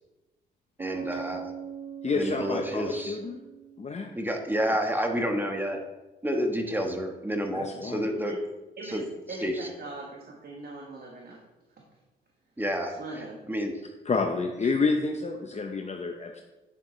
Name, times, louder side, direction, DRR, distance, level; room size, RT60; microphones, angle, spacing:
voice 1, 0.8-1.5 2.2-3.2 4.2-5.8 6.2-8.3 8.9-9.0 9.4-9.5 12.6-12.9 13.5-13.7, equal, 10° right, 3 dB, 1.2 m, -29 dB
Bass guitar, 0.8-4.4, right 7 dB, 30° right, 1.7 m, -41 dB
voice 2, 2.0-3.4 3.8-4.1 7.5-8.1 14.0-16.4, left 4 dB, 30° left, 3 dB, 0.8 m, -29 dB
voice 3, 9.3-11.4 11.8-11.9 12.9-13.4, right 2 dB, 45° right, -1 dB, 1.5 m, -40 dB
8.9 x 6.9 x 3.2 m, 1.1 s
supercardioid pair, 65°, 21 cm